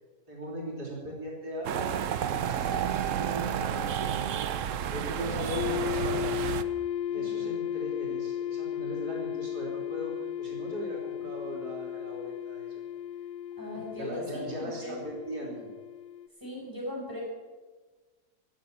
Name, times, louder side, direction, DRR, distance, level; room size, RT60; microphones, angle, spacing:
voice 1, 0.3-4.2 4.8-6.3 7.1-12.7 13.9-15.7, equal, 80° right, -3 dB, 4.0 m, -39 dB
sound 1, 1.6-6.6, right 9 dB, 60° right, 0.9 m, -31 dB
voice 2, 5.2-5.9 7.1-7.5 13.6-14.9 16.4-17.2, left 1 dB, 10° right, -4 dB, 6.3 m, -40 dB
sound 2, 5.6-16.3, left 10 dB, 80° left, 1.2 m, -35 dB
18.0 x 7.1 x 9.3 m, 1.3 s
omnidirectional pair, 1.7 m